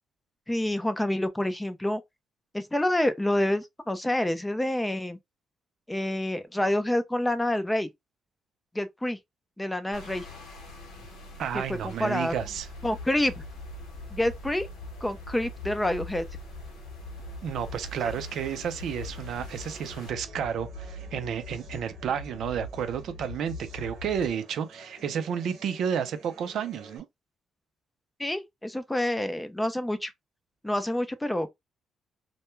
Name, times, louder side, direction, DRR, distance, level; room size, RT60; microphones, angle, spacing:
voice 1, 0.5-2.0 2.5-5.2 5.9-7.9 8.7-9.2 9.6-10.3 11.5-12.3 12.8-13.3 14.1-14.7 15.0-16.2 28.2-30.1 30.6-31.5, left 1 dB, 10° left, 0.4 m, -27 dB
sound 1, 9.9-20.1, left 1 dB, 90° left, 0.9 m, -46 dB
voice 2, 11.4-12.7 17.4-27.1, right 8 dB, 70° right, 0.4 m, -31 dB
sound 2, 12.3-24.3, left 2 dB, 65° left, 0.5 m, -42 dB
sound 3, 19.0-27.0, right 3 dB, 90° right, 0.9 m, -52 dB
2.2 x 2.1 x 3.0 m
cardioid pair, 90°, 0 cm